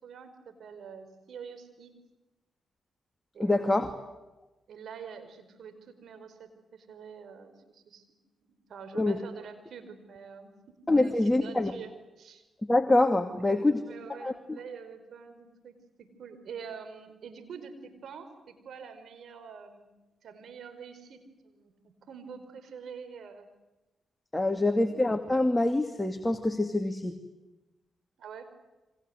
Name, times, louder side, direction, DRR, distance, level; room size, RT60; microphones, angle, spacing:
voice 1, 0.0-1.9 3.3-3.9 4.7-8.0 8.4-10.5 10.9-12.4 13.3-19.9 20.2-21.7 22.1-23.5 28.2-28.5, right 6 dB, 70° right, 9 dB, 4.8 m, -46 dB
voice 2, 3.4-3.9 8.9-9.2 10.9-11.7 12.7-13.8 14.2-14.3 24.3-27.2, left 2 dB, 20° left, 6 dB, 2.4 m, -25 dB
29.5 x 25.0 x 8.0 m, 1.1 s
supercardioid pair, 45°, 0 cm